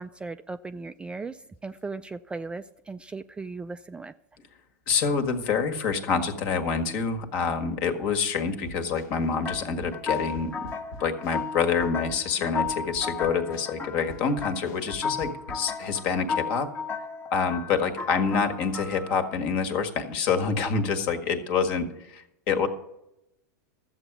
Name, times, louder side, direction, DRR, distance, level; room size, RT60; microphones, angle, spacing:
voice 1, 0.0-4.1, right 3 dB, 10° right, 10 dB, 0.3 m, -37 dB
voice 2, 4.9-10.5 11.0-16.7 17.3-22.7, left 5 dB, 50° left, 6 dB, 1.7 m, -27 dB
sound 1, 8.7-16.1, left 1 dB, 70° left, 1.7 m, -45 dB
sound 2, 9.4-19.4, left 5 dB, 20° left, 1.0 m, -35 dB
13.5 x 7.8 x 6.1 m, 0.85 s
hypercardioid pair, 115°, 10 cm